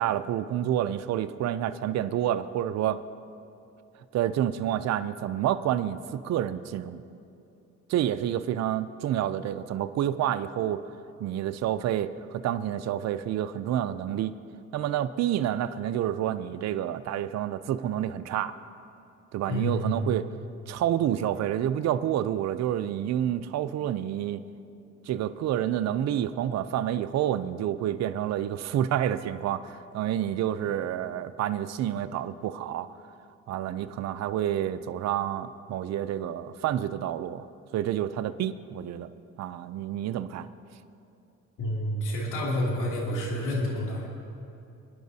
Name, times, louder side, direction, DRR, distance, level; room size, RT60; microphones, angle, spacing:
voice 1, 0.0-3.0 4.1-7.0 7.9-10.9 11.2-14.3 14.7-18.6 19.3-20.3 20.7-24.4 25.1-32.9 33.5-37.5 37.7-39.1 39.4-40.5, right 11 dB, 60° right, 12 dB, 0.5 m, -29 dB
voice 2, 19.5-20.0 41.6-44.1, equal, 90° left, -4 dB, 2.8 m, -29 dB
24.5 x 10.0 x 2.7 m, 2.6 s
cardioid pair, 90°, 30 cm